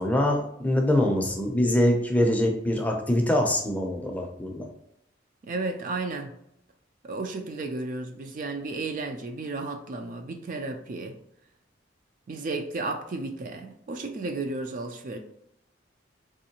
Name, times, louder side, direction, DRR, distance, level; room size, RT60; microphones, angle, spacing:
voice 1, 0.0-4.7, left 1 dB, 10° left, 0.5 m, -24 dB
voice 2, 5.4-6.3 7.0-11.2 12.3-15.2, right 3 dB, 45° right, 0.4 m, -33 dB
3.6 x 3.1 x 2.8 m
head